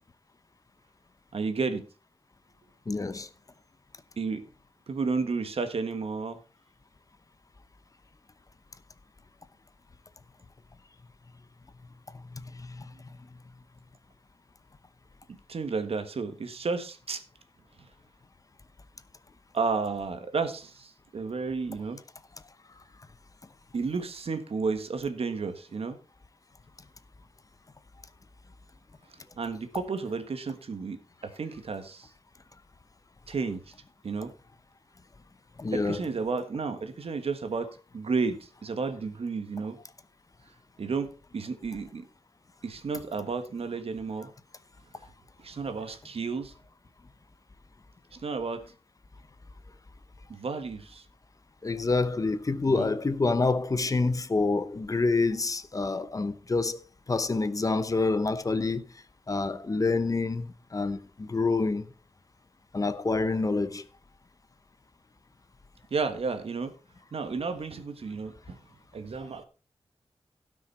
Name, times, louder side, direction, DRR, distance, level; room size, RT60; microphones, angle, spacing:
voice 1, 1.3-1.8 4.2-4.4 4.9-6.4 15.3-17.2 19.5-22.0 23.7-26.0 29.4-32.1 33.3-33.6 34.0-34.3 35.7-39.8 40.8-42.0 42.6-44.3 45.4-46.5 48.1-48.6 50.3-51.0 52.7-52.9 65.9-66.7 67.1-68.6 68.9-69.5, right 4 dB, 70° right, 1.5 m, -32 dB
voice 2, 2.9-3.3 12.1-12.9 35.6-36.1 51.6-58.9 59.3-61.9 62.7-63.9, left 3 dB, 35° left, 0.8 m, -27 dB
17.0 x 6.2 x 4.3 m
wide cardioid pair, 130°, 10 cm